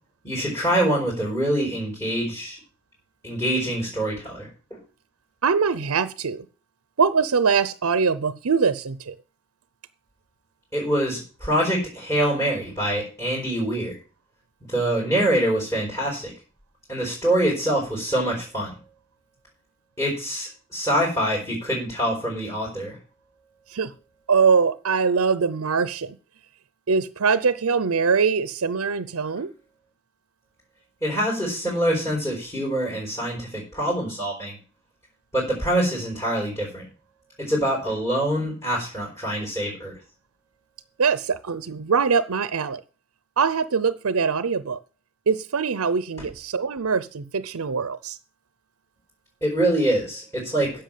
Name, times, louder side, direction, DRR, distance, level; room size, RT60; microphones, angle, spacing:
voice 1, 0.2-2.6 3.2-4.8 10.7-14.0 14.7-16.3 16.9-18.8 20.0-22.9 31.0-34.6 35.3-36.8 37.4-39.9 49.4-50.7, right 1 dB, 15° left, 5.0 m, -25 dB
voice 2, 5.4-6.5 7.0-9.1 23.7-23.9 24.3-26.2 26.9-29.5 41.0-42.8 43.4-44.8 45.3-48.2, right 5 dB, 80° right, 0.6 m, -22 dB
10.5 x 7.0 x 7.5 m
head